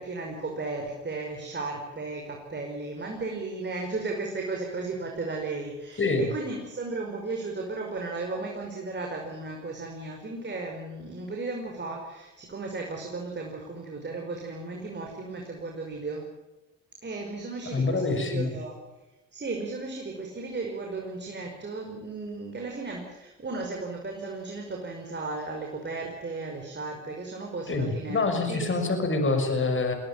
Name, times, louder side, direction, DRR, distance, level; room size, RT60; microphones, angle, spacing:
voice 1, 0.0-16.2 17.0-18.8 19.3-28.8, right 3 dB, 30° right, 1 dB, 5.5 m, -35 dB
voice 2, 17.7-18.5 27.7-29.9, left 3 dB, 35° left, 6 dB, 6.2 m, -26 dB
23.5 x 17.0 x 9.0 m, 1.1 s
hypercardioid pair, 60°, 35 cm